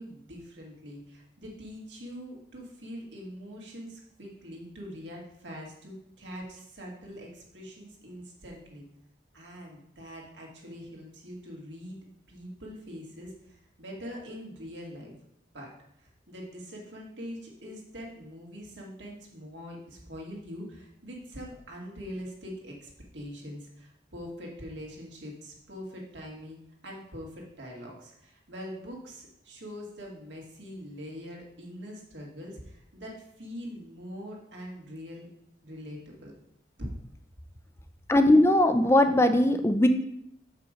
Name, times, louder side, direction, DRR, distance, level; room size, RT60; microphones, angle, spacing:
voice 1, 0.0-8.8 9.3-12.0 12.3-15.1 15.5-15.7 16.0-26.6 26.8-35.3 35.6-36.3 36.8-36.9, equal, 85° right, -2 dB, 2.2 m, -43 dB
voice 2, 38.1-39.9, left 1 dB, 15° left, 8 dB, 0.4 m, -20 dB
6.7 x 5.7 x 5.0 m, 0.77 s
head